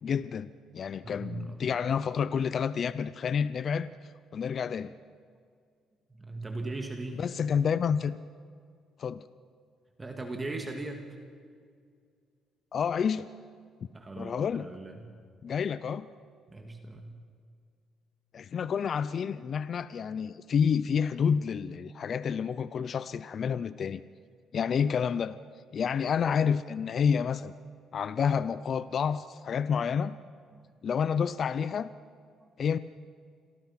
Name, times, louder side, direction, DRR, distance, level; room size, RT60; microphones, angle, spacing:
voice 1, 0.0-3.9 4.3-4.9 7.1-8.2 9.0-9.2 12.7-13.3 14.2-14.7 15.4-16.1 18.3-24.0 24.5-25.4 25.7-27.5 27.9-30.2 30.8-31.9 32.6-32.8, left 7 dB, 50° left, 15 dB, 0.6 m, -29 dB
voice 2, 1.0-1.8 6.1-7.3 10.0-11.1 13.9-15.1 16.5-17.2 30.5-30.6 32.4-32.5, right 2 dB, 20° right, 3 dB, 2.3 m, -39 dB
27.0 x 18.5 x 5.8 m, 2.1 s
cardioid pair, 100°, 0 cm